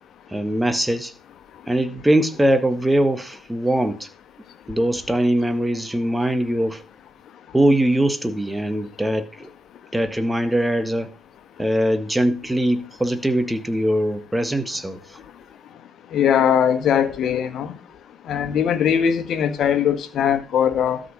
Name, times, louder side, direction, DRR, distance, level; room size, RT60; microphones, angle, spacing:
voice 1, 0.3-1.1 1.7-4.1 4.7-6.8 7.5-9.5 9.9-11.1 11.6-15.0, right 1 dB, 10° right, 1.7 m, -21 dB
voice 2, 16.1-17.7 18.3-21.0, left 8 dB, 50° left, 1.8 m, -20 dB
12.5 x 5.3 x 6.4 m
hypercardioid pair, 60°, 0 cm